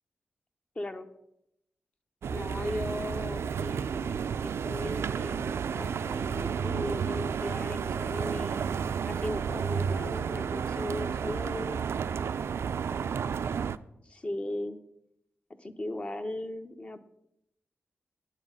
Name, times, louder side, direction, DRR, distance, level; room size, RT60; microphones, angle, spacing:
voice 1, 0.8-1.1 2.3-8.8 9.1-11.9 14.0-14.8 15.6-17.0, left 1 dB, 25° left, 8 dB, 0.7 m, -37 dB
sound 1, 2.2-13.8, right 7 dB, 75° right, 0.3 m, -32 dB
9.2 x 8.1 x 5.5 m, 0.81 s
wide cardioid pair, 140°, 4 cm